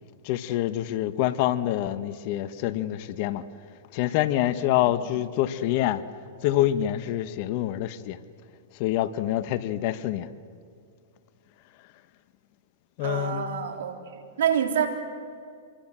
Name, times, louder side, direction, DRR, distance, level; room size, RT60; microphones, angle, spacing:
voice 1, 0.2-3.4 3.9-6.0 6.4-8.2 8.8-10.3 13.0-13.5, left 13 dB, 50° left, 13 dB, 1.1 m, -26 dB
voice 2, 13.0-14.0 14.4-14.9, right 8 dB, 75° right, 5 dB, 3.6 m, -26 dB
27.5 x 23.5 x 7.5 m, 2.3 s
hypercardioid pair, 125°, 0 cm